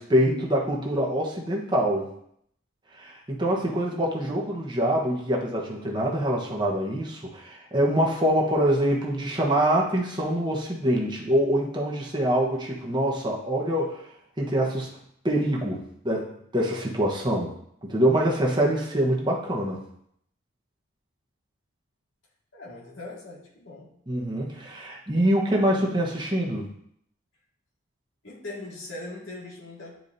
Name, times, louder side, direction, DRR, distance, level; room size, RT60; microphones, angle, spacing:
voice 1, 0.0-2.1 3.0-14.0 14.4-14.9 15.2-17.5 17.8-19.8 24.1-26.7, right 1 dB, 20° right, -2 dB, 1.1 m, -25 dB
voice 2, 22.5-23.9 28.2-30.0, left 2 dB, 60° left, -5 dB, 2.1 m, -40 dB
10.5 x 4.6 x 2.7 m, 0.70 s
head